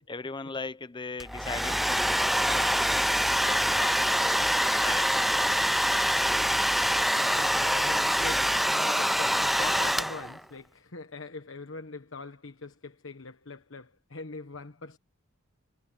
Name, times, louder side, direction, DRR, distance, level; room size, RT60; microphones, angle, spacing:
voice 1, 0.0-2.9 3.2-6.1, left 3 dB, 20° left, 0.7 m, -40 dB
Domestic sounds home sounds, 1.2-10.4, equal, ahead, 0.3 m, -25 dB
voice 2, 6.6-15.0, left 3 dB, 65° left, 1.3 m, -42 dB
head